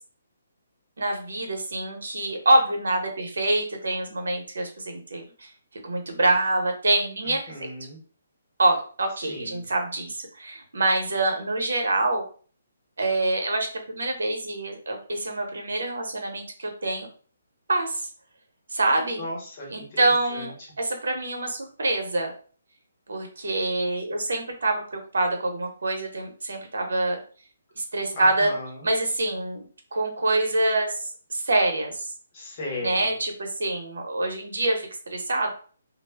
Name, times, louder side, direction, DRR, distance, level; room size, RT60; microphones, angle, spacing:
voice 1, 1.0-5.5 5.8-7.7 8.6-12.2 13.0-17.1 17.7-18.1 18.7-19.2 19.7-20.5 20.8-22.3 23.1-27.2 27.8-28.5 28.8-29.7 29.9-32.1 32.8-35.5, right 2 dB, 85° right, 3 dB, 0.7 m, -25 dB
voice 2, 7.2-8.0 9.2-9.7 19.2-20.0 20.3-20.5 28.1-28.9 32.3-33.1, left 1 dB, 20° left, -3 dB, 0.8 m, -36 dB
2.0 x 2.0 x 3.3 m, 0.42 s
hypercardioid pair, 175°, 0 cm